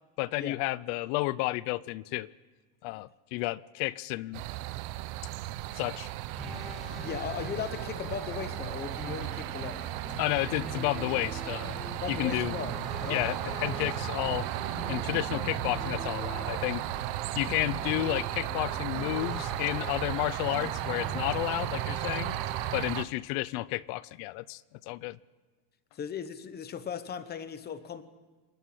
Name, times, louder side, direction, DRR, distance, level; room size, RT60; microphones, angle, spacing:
voice 1, 0.2-2.3 2.8-4.4 5.7-6.1 10.2-11.8 12.1-12.5 13.1-14.5 14.9-16.8 17.4-22.3 22.7-25.2, left 19 dB, 70° left, 20 dB, 0.7 m, -31 dB
sound 1, 4.3-23.0, right 16 dB, 60° right, 0.8 m, -35 dB
sound 2, 6.4-22.7, equal, ahead, 3.2 m, -42 dB
voice 2, 7.0-9.8 12.0-12.7 13.0-13.4 25.9-28.0, left 7 dB, 20° left, 12 dB, 0.9 m, -37 dB
27.0 x 12.0 x 8.5 m, 1.3 s
cardioid pair, 175°, 45 cm